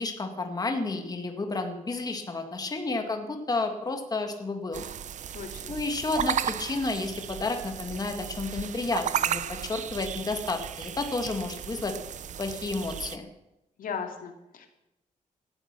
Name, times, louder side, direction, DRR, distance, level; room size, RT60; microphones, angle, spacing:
voice 1, 0.0-4.8 5.7-11.9 12.4-13.3, left 3 dB, 30° left, 5 dB, 1.9 m, -31 dB
sound 1, 4.7-13.2, right 9 dB, 60° right, 0.5 m, -34 dB
voice 2, 5.3-5.7 13.8-14.7, left 6 dB, 90° left, 4 dB, 2.4 m, -37 dB
17.5 x 12.5 x 6.1 m, 0.89 s
wide cardioid pair, 145°, 14 cm